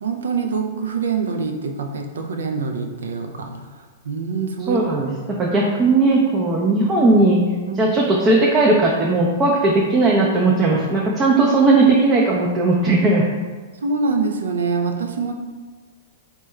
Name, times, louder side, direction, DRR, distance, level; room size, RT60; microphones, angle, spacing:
voice 1, 0.0-3.7 4.0-4.8 7.7-7.9 13.8-15.3, right 4 dB, 80° right, 4 dB, 0.4 m, -25 dB
voice 2, 4.7-7.4 7.8-13.2, right 2 dB, 25° right, -3 dB, 0.4 m, -17 dB
3.4 x 2.2 x 3.1 m, 1.4 s
hypercardioid pair, 120°, 0 cm